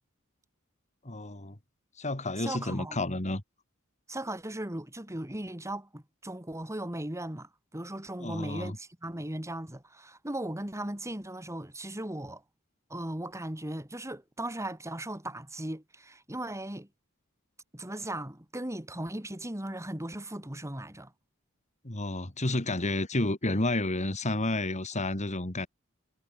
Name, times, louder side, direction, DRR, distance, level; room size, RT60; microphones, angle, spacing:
voice 1, 1.0-1.6 2.0-3.4 8.2-8.8 21.8-25.7, left 2 dB, 35° left, 2.5 m, -30 dB
voice 2, 2.4-3.0 4.1-12.4 12.9-16.9 17.7-21.1, right 1 dB, 15° right, 2.7 m, -37 dB
head